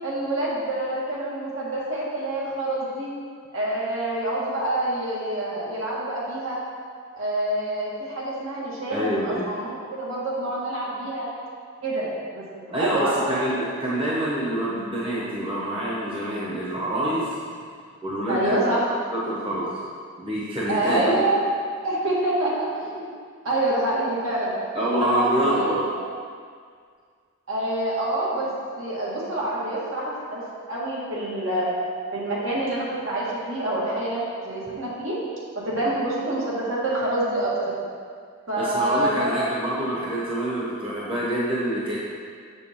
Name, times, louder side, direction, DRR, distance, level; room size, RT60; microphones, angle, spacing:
voice 1, 0.0-3.1 3.5-6.6 7.1-11.3 11.8-12.4 12.7-13.5 18.3-18.8 20.7-21.4 21.8-23.1 23.4-24.5 25.0-26.0 27.5-28.5 28.8-30.4 30.7-31.7 32.1-35.1 35.6-37.7 38.5-39.4, right 1 dB, 70° right, -7 dB, 2.1 m, -26 dB
voice 2, 8.9-9.4 12.7-17.3 18.0-18.7 19.1-19.7 20.2-21.3 24.7-25.8 38.6-42.0, right 1 dB, 25° right, -7 dB, 1.1 m, -26 dB
7.2 x 6.7 x 3.7 m, 2.1 s
head